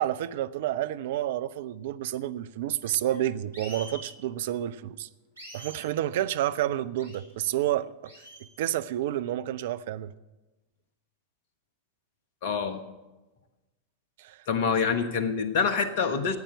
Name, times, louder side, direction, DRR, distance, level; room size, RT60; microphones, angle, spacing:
voice 1, 0.0-5.1 5.5-7.9 8.6-10.1 14.2-14.4, right 12 dB, 55° right, 0.5 m, -29 dB
sound 1, 3.5-4.1 5.4-5.8 7.0-7.2 8.0-8.5, equal, 80° right, 3.6 m, -44 dB
voice 2, 12.4-12.8 14.5-16.4, left 5 dB, 50° left, 1.3 m, -26 dB
14.5 x 8.9 x 8.0 m
figure-of-eight pair, 90°, 0 cm